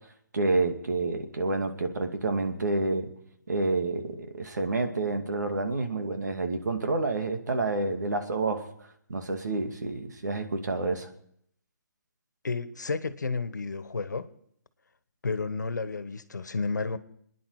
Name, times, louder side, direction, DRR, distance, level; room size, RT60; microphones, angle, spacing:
voice 1, 0.3-3.1 3.5-8.7 9.1-11.1, right 3 dB, 80° right, 5 dB, 2.3 m, -29 dB
voice 2, 12.4-14.3 15.2-17.0, left 4 dB, 85° left, 13 dB, 1.4 m, -31 dB
26.5 x 10.0 x 4.9 m, 0.67 s
hypercardioid pair, 150°, 9 cm